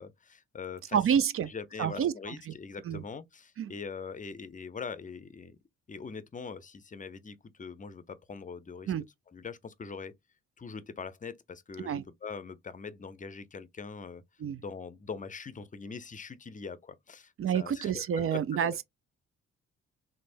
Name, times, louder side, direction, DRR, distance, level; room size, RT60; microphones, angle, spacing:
voice 1, 0.0-1.2 1.5-5.6 5.9-8.9 9.3-10.1 10.6-14.2 14.6-18.4 18.7-18.8, left 5 dB, 25° left, 0.6 m, -42 dB
voice 2, 0.9-1.5 1.8-2.3 2.8-3.0 3.6-3.7 8.9-9.0 11.8-12.0 14.4-14.6 17.4-18.8, right 8 dB, 45° right, 0.4 m, -28 dB
3.3 x 2.0 x 2.5 m
supercardioid pair, 55°, 30 cm